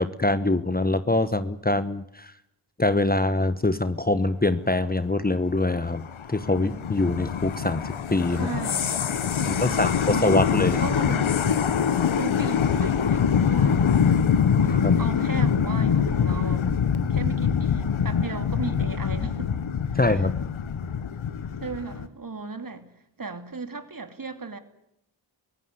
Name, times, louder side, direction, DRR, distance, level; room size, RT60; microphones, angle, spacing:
voice 1, 0.0-2.3 2.8-8.5 9.5-10.8 14.7-15.0 20.0-20.4, left 2 dB, 20° left, 1.1 m, -24 dB
sound 1, 5.5-22.1, left 7 dB, 80° left, 1.3 m, -24 dB
voice 2, 8.3-9.0 9.3-11.4 11.9-14.2 15.0-16.8 17.1-19.6 19.9-20.3 21.6-22.9 23.2-24.6, right 4 dB, 45° right, 2.9 m, -36 dB
23.5 x 16.5 x 9.6 m
cardioid pair, 55°, 47 cm